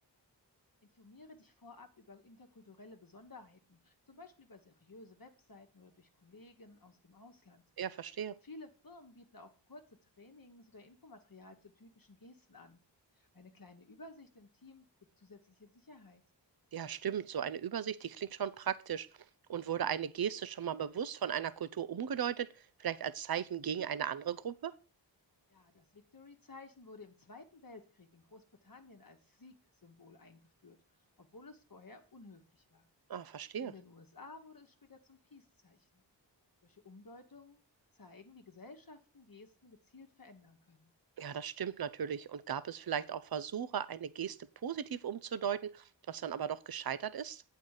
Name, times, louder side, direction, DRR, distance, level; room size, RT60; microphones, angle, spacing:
voice 1, 0.8-7.6 8.0-12.8 13.1-14.9 15.2-16.2 25.5-29.6 29.8-30.8 31.2-32.9 33.6-36.0 36.6-37.6 37.9-40.9, left 3 dB, 50° left, 1.2 m, -55 dB
voice 2, 7.8-8.4 16.7-19.1 19.5-22.5 22.8-24.7 33.1-33.7 41.2-44.4 44.6-47.4, right 8 dB, 55° right, 0.6 m, -37 dB
8.4 x 4.6 x 6.5 m
wide cardioid pair, 55°, 44 cm